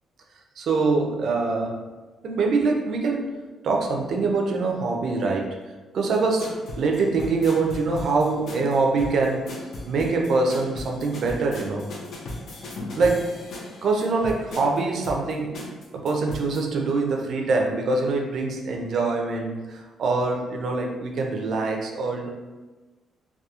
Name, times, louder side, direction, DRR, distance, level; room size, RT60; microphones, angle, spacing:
voice 1, 0.6-1.8 2.2-3.3 3.6-5.6 5.9-6.5 6.8-9.5 9.9-11.9 13.0-13.3 13.8-15.6 15.9-22.3, right 3 dB, 65° right, 1 dB, 0.4 m, -24 dB
sound 1, 6.1-16.6, left 1 dB, 65° left, 0.5 m, -38 dB
2.8 x 2.3 x 2.3 m, 1.2 s
cardioid pair, 90°, 0 cm